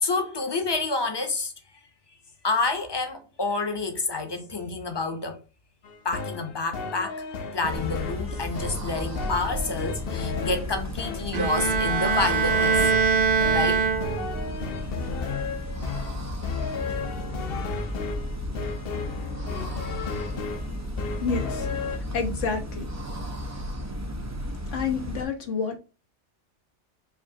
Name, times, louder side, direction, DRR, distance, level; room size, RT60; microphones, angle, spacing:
voice 1, 0.0-1.5 2.4-5.4 6.0-7.3 7.5-12.8 13.5-13.9, left 3 dB, 25° left, 0.7 m, -28 dB
sound 1, 5.8-22.0, left 5 dB, 60° left, 0.8 m, -34 dB
sound 2, 7.7-25.2, equal, 25° right, 0.3 m, -34 dB
Bowed string instrument, 11.3-14.5, right 6 dB, 55° right, 0.7 m, -23 dB
voice 2, 21.2-22.9 24.7-25.8, left 5 dB, 80° left, 1.2 m, -29 dB
4.8 x 3.0 x 2.7 m
omnidirectional pair, 1.2 m